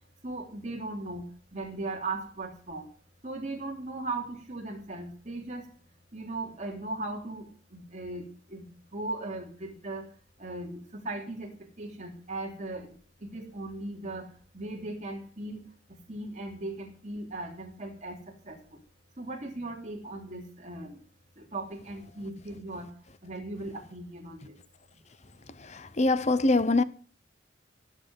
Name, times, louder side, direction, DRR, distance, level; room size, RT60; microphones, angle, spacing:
voice 1, 0.2-2.9 3.2-10.1 10.4-18.8 19.2-21.0 21.4-22.9 23.2-24.6 26.4-26.5, right 2 dB, 40° right, 3.4 m, -38 dB
voice 2, 26.0-26.8, left 2 dB, 35° left, 0.9 m, -22 dB
17.5 x 7.6 x 7.9 m
head